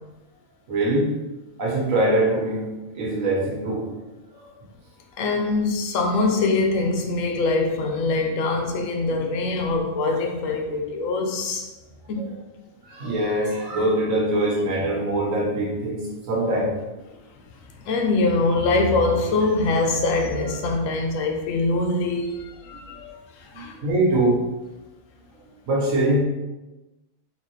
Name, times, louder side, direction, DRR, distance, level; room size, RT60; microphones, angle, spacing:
voice 1, 0.7-1.1 1.6-3.9 4.3-4.5 12.2-12.3 12.9-16.7 23.8-24.4 25.7-26.2, right 1 dB, 80° right, 1.4 m, -23 dB
voice 2, 5.2-11.7 12.1-12.3 17.8-23.8, left 3 dB, 75° left, 1.0 m, -23 dB
4.0 x 3.0 x 3.1 m
omnidirectional pair, 1.4 m